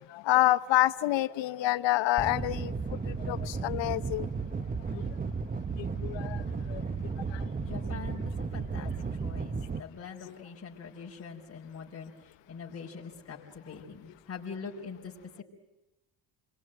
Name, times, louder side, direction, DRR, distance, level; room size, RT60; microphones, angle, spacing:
voice 1, 0.1-2.7 3.1-4.3 4.9-5.0 6.0-6.4 6.7-6.8 7.3-7.4, left 15 dB, 80° left, 15 dB, 1.0 m, -27 dB
sound 1, 2.2-9.8, right 4 dB, 20° right, 0.9 m, -34 dB
voice 2, 7.5-8.9 9.2-9.5 9.8-15.1, left 6 dB, 30° left, -4 dB, 4.8 m, -43 dB
29.0 x 22.5 x 9.1 m, 1.1 s
cardioid pair, 110°, 43 cm